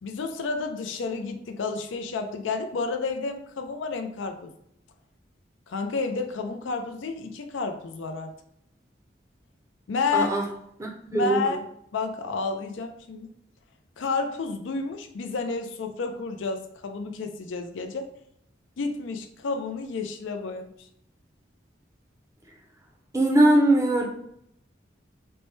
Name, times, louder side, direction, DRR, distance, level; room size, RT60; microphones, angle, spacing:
voice 1, 0.0-4.5 5.7-8.3 9.9-10.4 11.1-11.7 11.9-13.3 14.0-18.1 18.8-20.9, left 4 dB, 90° left, 6 dB, 0.4 m, -30 dB
voice 2, 10.1-10.4 10.8-11.5 23.1-24.1, right 1 dB, 15° right, 1 dB, 0.5 m, -21 dB
4.2 x 2.1 x 3.1 m, 0.74 s
head